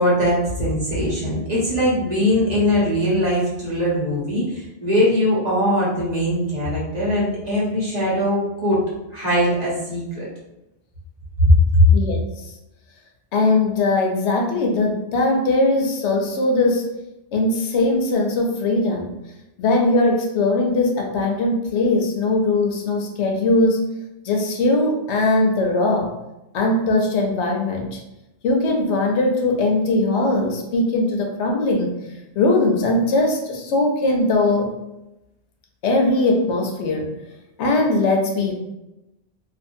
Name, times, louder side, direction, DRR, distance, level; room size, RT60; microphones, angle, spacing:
voice 1, 0.0-8.8 9.1-10.2 11.7-11.8, equal, 40° right, -8 dB, 1.1 m, -21 dB
voice 2, 13.3-16.9 17.3-19.1 19.6-23.8 24.3-26.1 26.5-28.0 28.4-31.9 32.4-34.7 35.8-37.1 37.6-38.5, left 2 dB, 85° left, 1 dB, 0.9 m, -20 dB
2.6 x 2.4 x 2.6 m, 0.92 s
omnidirectional pair, 1.1 m